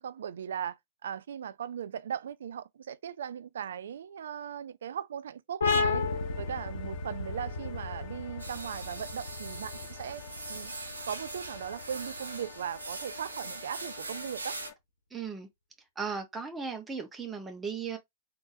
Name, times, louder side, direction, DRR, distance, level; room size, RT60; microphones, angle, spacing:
voice 1, 0.0-6.1 6.4-10.2 10.5-10.7 11.1-14.6, right 8 dB, 70° right, 0.3 m, -38 dB
sound 1, 5.6-12.9, left 4 dB, 80° left, 0.9 m, -34 dB
sound 2, 5.8-14.7, left 10 dB, 50° left, 0.7 m, -49 dB
sound 3, 8.4-14.7, right 3 dB, 90° right, 0.8 m, -42 dB
voice 2, 15.1-15.5 16.0-18.0, right 5 dB, 15° right, 1.0 m, -36 dB
3.7 x 2.7 x 2.5 m
hypercardioid pair, 105°, 0 cm